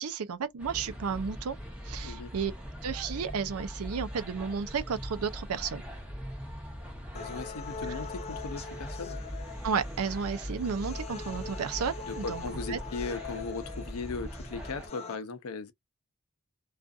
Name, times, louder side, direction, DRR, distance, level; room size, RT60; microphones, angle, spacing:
voice 1, 0.0-1.6 1.8-2.5 2.8-5.8 9.6-12.4 12.7-12.8, right 6 dB, 80° right, 0.5 m, -32 dB
sound 1, 0.6-14.9, equal, 5° right, 0.7 m, -41 dB
voice 2, 7.1-9.2 12.0-15.7, left 4 dB, 85° left, 0.6 m, -38 dB
sound 2, 7.2-15.2, left 5 dB, 30° left, 0.4 m, -43 dB
2.5 x 2.4 x 2.3 m
head